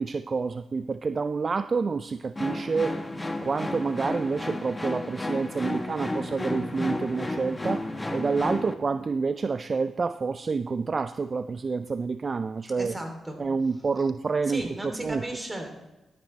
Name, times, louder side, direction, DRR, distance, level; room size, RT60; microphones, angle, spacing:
voice 1, 0.0-3.0 3.4-12.9 13.4-14.6 15.0-15.2, right 4 dB, 45° right, 13 dB, 0.4 m, -28 dB
sound 1, 2.4-8.7, left 1 dB, 20° left, 1.1 m, -32 dB
voice 2, 12.7-13.4 14.4-15.7, right 1 dB, 20° right, 4 dB, 3.0 m, -35 dB
12.5 x 10.5 x 3.3 m, 1.0 s
supercardioid pair, 55°, 0 cm